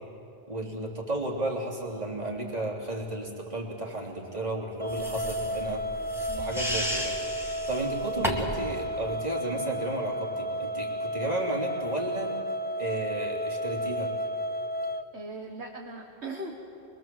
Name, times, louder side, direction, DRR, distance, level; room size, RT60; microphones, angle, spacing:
voice 1, 0.5-5.8 6.3-7.1 7.7-12.3 12.8-14.1, right 1 dB, 35° right, -2 dB, 3.4 m, -33 dB
sound 1, 4.8-15.0, equal, 15° left, 0.4 m, -32 dB
sound 2, 4.9-8.7, equal, ahead, 2.2 m, -34 dB
voice 2, 6.3-6.6 15.1-16.5, right 2 dB, 65° right, 1 dB, 2.0 m, -39 dB
25.0 x 22.5 x 7.7 m, 2.7 s
omnidirectional pair, 1.2 m